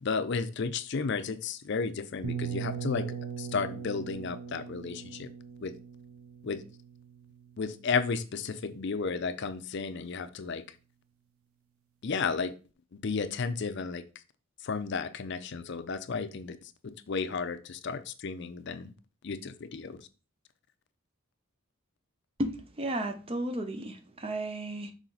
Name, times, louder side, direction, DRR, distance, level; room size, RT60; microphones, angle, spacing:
voice 1, 0.0-5.3 5.6-5.7 6.4-6.6 7.6-10.6 12.0-12.5 12.9-14.0 14.6-16.6 16.8-18.9 19.2-20.0, left 5 dB, 55° left, 0.5 m, -33 dB
sound 1, 2.2-8.0, right 7 dB, 85° right, 0.7 m, -39 dB
voice 2, 22.4-24.9, right 1 dB, 25° right, 0.5 m, -33 dB
6.2 x 4.0 x 3.9 m
head